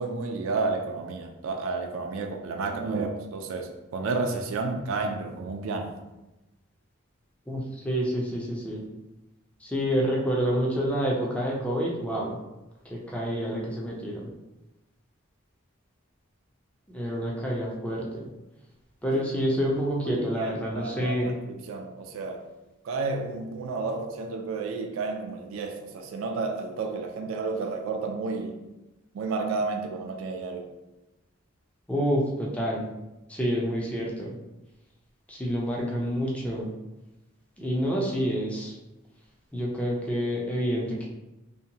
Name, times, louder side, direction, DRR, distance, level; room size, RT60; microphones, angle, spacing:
voice 1, 0.0-5.9 19.1-19.2 20.0-22.5 22.8-28.6 29.1-30.7, right 3 dB, 75° right, 4 dB, 0.3 m, -31 dB
voice 2, 7.5-8.8 9.6-12.4 12.9-14.3 16.9-18.3 19.0-21.3 31.9-32.8 33.3-34.3 35.3-36.7 37.6-38.7 39.5-41.1, equal, 5° left, -3 dB, 0.4 m, -28 dB
2.7 x 2.1 x 2.7 m, 0.99 s
head